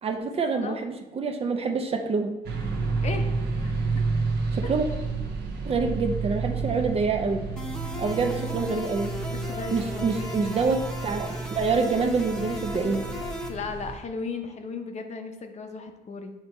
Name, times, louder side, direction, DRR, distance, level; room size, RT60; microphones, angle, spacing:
voice 1, 0.0-2.3 4.5-4.9 5.6-7.5 8.0-9.1 9.7-13.0, right 4 dB, 35° right, 6 dB, 0.6 m, -26 dB
sound 1, 2.4-14.0, right 4 dB, 80° right, 1.0 m, -31 dB
sound 2, 7.6-13.5, left 1 dB, 5° left, 1.0 m, -37 dB
voice 2, 9.3-10.5 13.5-16.3, left 4 dB, 40° left, 5 dB, 0.8 m, -36 dB
8.1 x 3.0 x 4.3 m, 1.0 s
cardioid pair, 110°, 17 cm